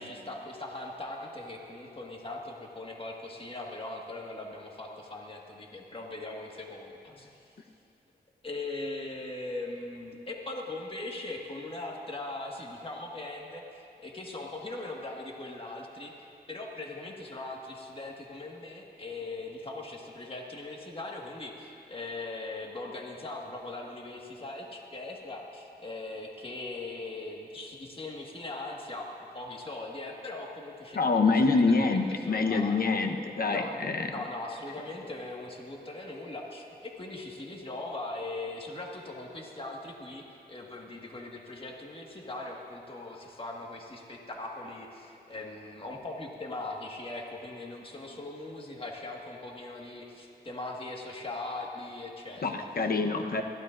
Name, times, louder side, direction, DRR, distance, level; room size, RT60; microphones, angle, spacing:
voice 1, 0.0-7.5 8.4-13.6 14.0-16.1 16.5-32.8 33.5-52.9, left 2 dB, 35° left, -1 dB, 1.7 m, -40 dB
voice 2, 30.9-34.1 52.4-53.4, left 3 dB, 60° left, 4 dB, 1.0 m, -26 dB
21.5 x 15.0 x 2.6 m, 2.9 s
cardioid pair, 65°, 17 cm